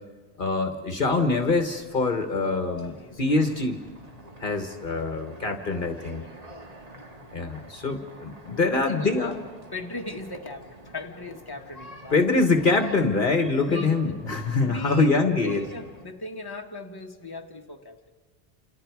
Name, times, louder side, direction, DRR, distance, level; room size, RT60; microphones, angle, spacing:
voice 1, 0.4-3.8 4.4-6.2 7.3-9.4 12.1-15.6, left 3 dB, 50° left, 6 dB, 1.5 m, -24 dB
sound 1, 1.0-16.1, right 1 dB, 35° right, 2.1 m, -47 dB
voice 2, 2.7-3.4 5.9-6.6 8.7-9.4 9.7-12.4 13.7-14.2 14.6-18.0, left 2 dB, 20° left, 2 dB, 1.6 m, -38 dB
28.5 x 28.5 x 4.8 m, 1.3 s
omnidirectional pair, 1.1 m